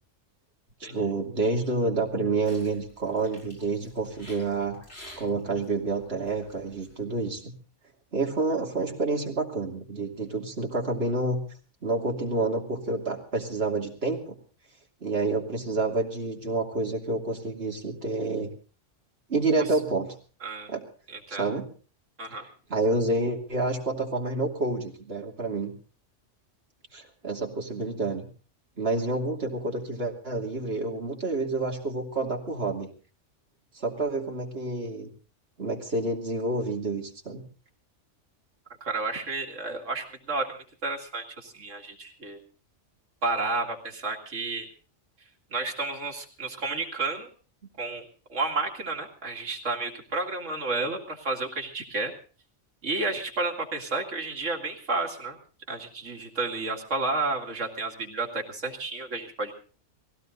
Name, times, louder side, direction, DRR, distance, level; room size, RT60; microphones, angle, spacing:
voice 1, 0.8-4.8 5.2-7.5 8.1-11.4 11.8-14.4 15.0-18.5 19.3-20.1 20.7-20.8 21.3-21.7 22.7-25.7 26.9-28.3 28.8-32.9 33.7-35.1 35.6-37.4, right 3 dB, 55° right, 0 dB, 2.9 m, -28 dB
sound 1, 2.1-7.0, equal, 65° left, 7.2 m, -51 dB
voice 2, 21.1-21.5 22.2-22.5 38.8-42.4 43.2-44.7 45.5-47.3 47.8-52.1 52.8-55.4 55.7-59.5, right 3 dB, 80° right, 2 dB, 2.6 m, -31 dB
19.5 x 16.5 x 4.0 m, 0.38 s
omnidirectional pair, 1.2 m